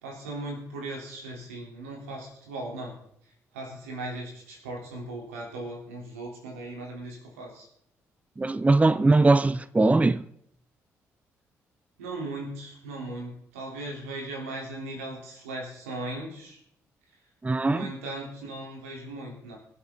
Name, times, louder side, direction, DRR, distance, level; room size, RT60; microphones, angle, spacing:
voice 1, 0.0-3.0 3.5-7.7 12.0-16.6 17.6-19.6, right 2 dB, 90° right, 3.5 m, -38 dB
voice 2, 8.4-10.2 17.4-17.9, right 2 dB, 20° right, 0.6 m, -21 dB
23.0 x 8.0 x 3.9 m
hypercardioid pair, 45°, 7 cm